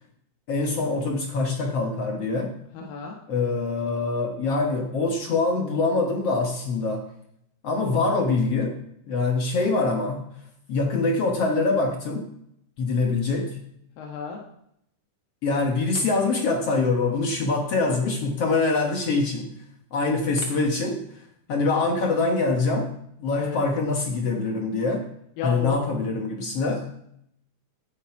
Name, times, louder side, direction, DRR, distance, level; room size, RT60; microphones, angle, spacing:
voice 1, 0.5-2.6 3.3-7.1 7.6-8.8 9.1-10.3 10.7-12.3 12.8-13.6 15.4-19.5 19.9-21.0 21.5-25.1 25.4-26.8, left 3 dB, 55° left, 3 dB, 1.9 m, -24 dB
voice 2, 2.7-3.2 14.0-14.4 23.4-23.6 25.4-25.8, left 5 dB, 85° left, 0 dB, 3.3 m, -32 dB
16.0 x 9.1 x 4.8 m, 0.74 s
omnidirectional pair, 4.0 m